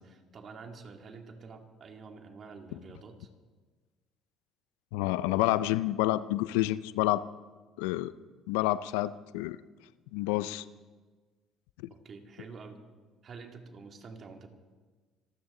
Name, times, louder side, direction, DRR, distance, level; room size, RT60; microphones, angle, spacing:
voice 1, 0.0-3.3 11.9-12.8 13.2-14.5, right 4 dB, 50° right, 4 dB, 2.3 m, -48 dB
voice 2, 4.9-7.2 7.8-8.1 8.5-9.6 10.1-10.6, left 16 dB, 85° left, 17 dB, 0.4 m, -28 dB
27.0 x 12.5 x 3.9 m, 1.4 s
supercardioid pair, 75°, 0 cm